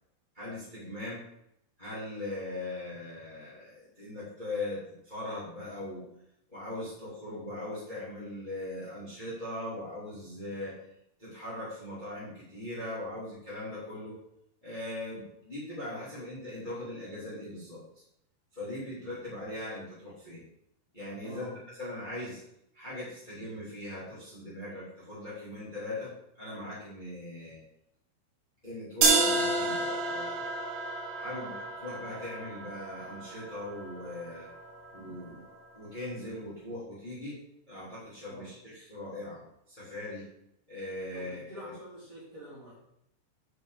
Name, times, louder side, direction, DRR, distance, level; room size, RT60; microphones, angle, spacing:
voice 1, 0.3-1.2 1.8-6.0 6.5-10.7 11.2-14.1 14.6-17.8 18.5-20.4 20.9-21.5 21.8-22.4 22.7-26.1 26.3-27.6 28.6-30.4 31.1-34.5 34.9-35.5 35.7-37.4 37.7-40.2 40.7-41.7, left 1 dB, 10° left, -8 dB, 2.5 m, -40 dB
voice 2, 21.2-21.5 31.3-31.5 38.3-38.4 41.1-42.7, equal, 35° right, -7 dB, 3.7 m, -46 dB
sound 1, 29.0-35.0, right 3 dB, 80° right, 4.3 m, -30 dB
9.5 x 5.6 x 5.1 m, 0.77 s
omnidirectional pair, 5.5 m